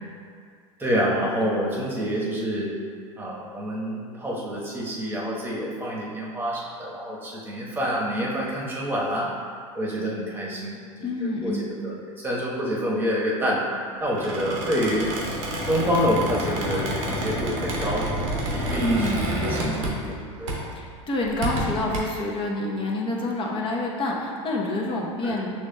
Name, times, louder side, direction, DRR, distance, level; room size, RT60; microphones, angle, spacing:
voice 1, 0.8-2.7 3.2-9.3 9.7-10.8 11.2-13.6 14.0-15.1 15.7-18.3 18.5-20.6 25.2-25.4, equal, 15° right, -5 dB, 1.0 m, -27 dB
voice 2, 11.0-11.7 18.8-19.3 20.8-25.5, left 2 dB, 30° left, -2 dB, 0.8 m, -27 dB
Squeak, 14.1-20.2 20.5-20.7 21.2-22.0, right 1 dB, 85° right, 1.0 m, -29 dB
6.8 x 3.1 x 2.2 m, 2.1 s
hypercardioid pair, 105°, 17 cm